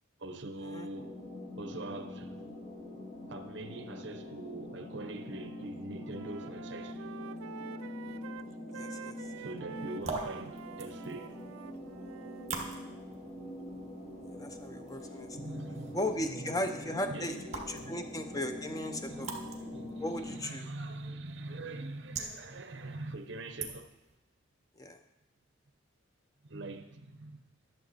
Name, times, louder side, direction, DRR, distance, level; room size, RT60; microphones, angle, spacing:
voice 1, 0.2-1.2 1.5-2.4 3.3-7.0 9.3-11.4 15.3-16.4 16.9-17.3 17.7-18.2 19.1-23.9 26.5-27.4, right 2 dB, 60° right, 0.8 m, -43 dB
sound 1, 0.9-20.4, left 1 dB, 35° left, 4.0 m, -44 dB
Wind instrument woodwind instrument, 5.3-5.7 6.0-12.5, right 7 dB, 85° right, 0.3 m, -48 dB
voice 2, 8.7-9.2 14.2-15.4 15.9-17.4 17.7-19.3 20.0-20.7 24.8-25.0, left 1 dB, 15° left, 0.6 m, -36 dB
sound 2, 9.7-24.1, right 4 dB, 35° right, 1.2 m, -46 dB
11.5 x 7.0 x 4.1 m
head